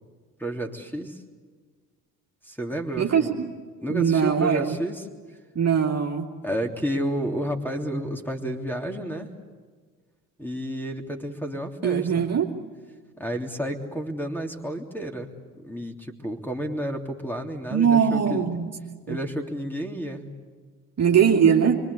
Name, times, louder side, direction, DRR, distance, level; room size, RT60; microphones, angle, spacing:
voice 1, 0.4-1.2 2.4-3.3 3.8-5.1 6.4-9.3 10.4-12.3 13.2-18.4 19.1-20.3, right 1 dB, 5° left, 3 dB, 3.2 m, -31 dB
voice 2, 3.0-3.5 3.9-4.8 5.5-6.3 11.8-12.5 17.7-18.7 19.1-19.2 21.0-21.8, right 7 dB, 35° right, 1 dB, 2.6 m, -21 dB
26.5 x 24.5 x 8.4 m, 1.5 s
figure-of-eight pair, 55°, 47 cm